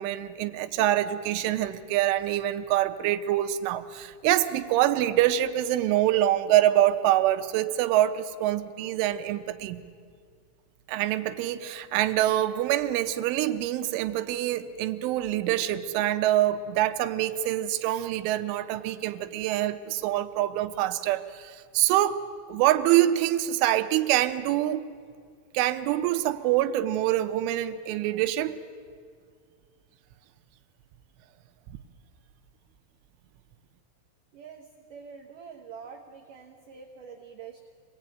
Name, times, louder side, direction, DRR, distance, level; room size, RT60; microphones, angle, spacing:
voice 1, 0.0-9.8 10.9-22.2 22.5-24.8 25.6-28.6, right 13 dB, 85° right, 8 dB, 3.3 m, -25 dB
voice 2, 34.3-37.6, right 6 dB, 70° right, 2 dB, 2.1 m, -45 dB
25.5 x 19.0 x 9.0 m, 2.1 s
omnidirectional pair, 5.5 m